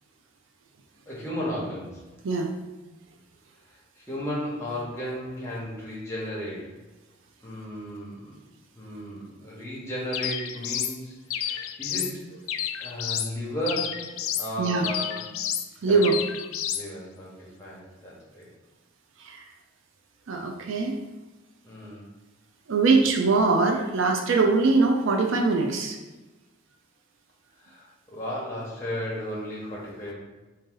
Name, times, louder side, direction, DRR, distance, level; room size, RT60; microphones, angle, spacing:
voice 1, 1.1-2.0 3.7-6.7 7.4-8.4 8.7-12.2 12.8-14.1 14.4-15.2 15.9-16.0 16.7-18.5 21.6-22.1 27.6-30.1, equal, 15° left, -6 dB, 1.1 m, -34 dB
sound 1, 10.1-11.0 11.3-12.1 12.5-13.3 13.7-14.5 14.8-15.7 16.0-16.8, left 10 dB, 80° left, 0.3 m, -30 dB
voice 2, 15.8-16.2 19.2-19.4 20.3-21.0 22.7-26.0, right 3 dB, 70° right, 2 dB, 0.4 m, -22 dB
3.9 x 2.7 x 3.8 m, 1.2 s
head